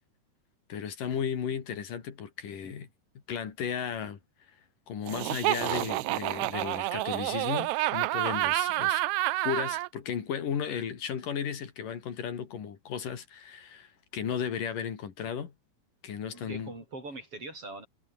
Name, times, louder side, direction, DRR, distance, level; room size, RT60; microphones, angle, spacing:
voice 1, 0.7-2.9 3.3-4.2 4.9-9.0 9.4-15.5 16.0-16.7, left 7 dB, 80° left, 4.4 m, -35 dB
Laughter, 5.1-9.9, right 18 dB, 80° right, 1.7 m, -29 dB
voice 2, 16.2-17.9, right 2 dB, 40° right, 8.9 m, -43 dB
omnidirectional pair, 3.8 m